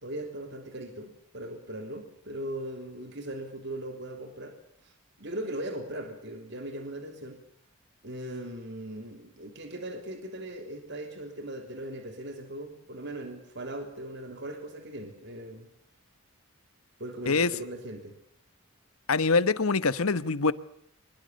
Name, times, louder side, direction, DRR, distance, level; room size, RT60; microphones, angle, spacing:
voice 1, 0.0-4.6 4.8-4.9 5.2-7.4 8.0-15.7 17.0-18.1, right 1 dB, 55° right, 3.2 m, -39 dB
voice 2, 19.1-20.5, left 4 dB, 80° left, 1.2 m, -24 dB
24.5 x 21.5 x 6.5 m
head